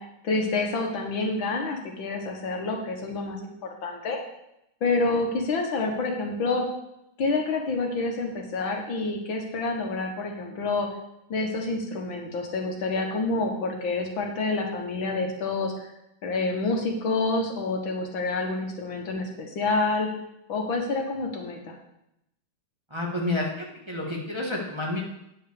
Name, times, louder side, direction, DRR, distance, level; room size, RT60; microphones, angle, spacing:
voice 1, 0.0-4.2 4.8-6.7 7.2-10.9 11.3-15.7 16.2-20.1 20.5-21.7, left 3 dB, 80° left, 2 dB, 2.2 m, -28 dB
voice 2, 22.9-25.0, left 2 dB, 15° right, -3 dB, 1.6 m, -29 dB
9.4 x 5.6 x 6.7 m, 0.83 s
omnidirectional pair, 2.1 m